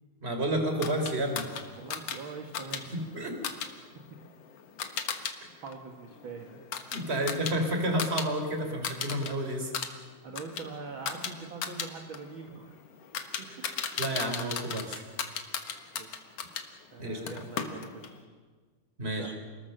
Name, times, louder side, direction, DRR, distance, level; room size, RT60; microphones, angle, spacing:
voice 1, 0.2-1.5 3.1-3.3 6.9-9.7 13.6-13.7 14.0-15.0 17.0-17.2 19.0-19.3, right 1 dB, 20° right, 4 dB, 3.4 m, -30 dB
sound 1, 0.8-5.3 5.7-8.3 8.6-9.3 9.6-16.7 17.3-18.2, left 7 dB, 55° left, 2.3 m, -37 dB
voice 2, 1.8-2.9 4.1-4.2 5.6-6.6 10.2-12.8 13.4-13.7 16.0-16.2 16.9-18.3 19.0-19.3, right 4 dB, 45° right, 3 dB, 2.2 m, -43 dB
29.0 x 20.5 x 6.6 m, 1.5 s
omnidirectional pair, 3.6 m